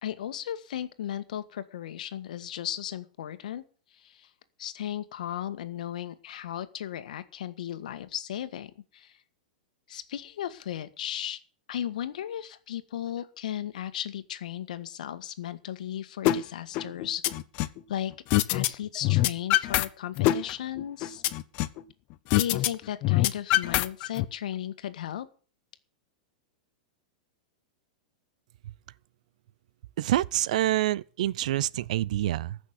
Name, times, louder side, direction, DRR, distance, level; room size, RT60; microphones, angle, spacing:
voice 1, 0.0-3.6 3.9-4.3 4.6-9.2 9.9-11.4 11.7-17.3 17.9-18.1 18.5-21.2 22.3-25.3, left 11 dB, 75° left, 1.6 m, -35 dB
sound 1, 16.3-16.4 16.8-17.8 18.3-18.7 19.0-19.9 20.2-21.8 22.3-22.7 23.0-24.3, left 16 dB, 35° left, 0.8 m, -24 dB
voice 2, 30.0-32.6, right 14 dB, 65° right, 0.6 m, -27 dB
14.5 x 6.4 x 9.5 m
supercardioid pair, 155°, 4 cm